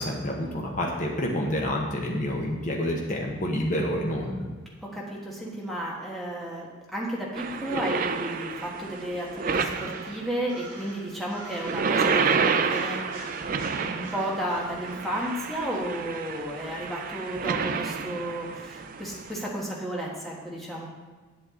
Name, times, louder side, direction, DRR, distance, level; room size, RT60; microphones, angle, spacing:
voice 1, 0.0-4.5, left 1 dB, 40° left, -1 dB, 1.0 m, -28 dB
voice 2, 4.8-13.4 13.8-20.9, right 1 dB, ahead, -4 dB, 1.4 m, -33 dB
sound 1, 7.4-10.5 11.4-19.5, right 5 dB, 40° right, 0.4 m, -29 dB
sound 2, 9.7-11.9 12.6-16.7, right 3 dB, 65° right, 3.0 m, -46 dB
8.6 x 8.3 x 3.7 m, 1.3 s
head